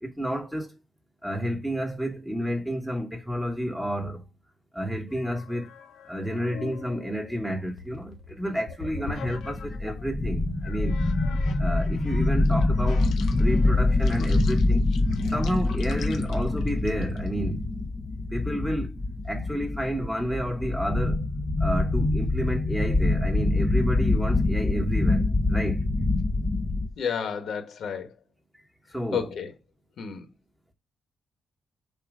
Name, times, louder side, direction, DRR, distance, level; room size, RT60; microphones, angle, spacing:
voice 1, 0.0-0.7 1.2-4.2 4.7-5.7 6.1-11.0 11.6-13.1 13.4-14.8 15.3-17.7 18.3-18.9 19.3-21.2 21.6-25.2 25.5-25.8 28.9-29.3, equal, 5° right, 1.2 m, -30 dB
sound 1, 5.1-10.1 10.6-17.3, left 5 dB, 90° left, 0.9 m, -43 dB
sound 2, 8.8-26.9, left 2 dB, 15° left, 0.7 m, -25 dB
voice 2, 27.0-28.1 29.1-29.5 30.0-30.3, left 7 dB, 65° left, 1.4 m, -31 dB
6.8 x 2.9 x 4.9 m
cardioid pair, 130°, 0 cm